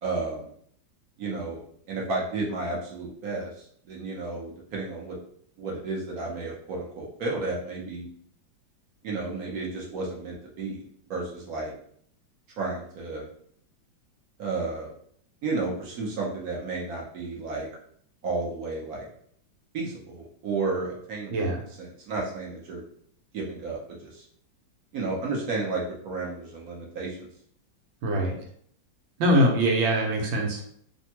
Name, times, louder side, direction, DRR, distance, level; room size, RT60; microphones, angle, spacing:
voice 1, 0.0-0.5 1.2-1.6 1.9-5.2 5.6-8.1 9.0-10.8 11.1-11.7 12.6-13.2 14.4-14.9 15.4-17.7 18.2-19.1 19.7-22.8 23.3-24.3 24.9-27.3, right 3 dB, 60° right, -3 dB, 1.0 m, -32 dB
voice 2, 28.0-28.3 29.2-30.7, right 1 dB, 80° right, 1 dB, 1.4 m, -23 dB
3.4 x 2.1 x 2.8 m, 0.63 s
omnidirectional pair, 2.1 m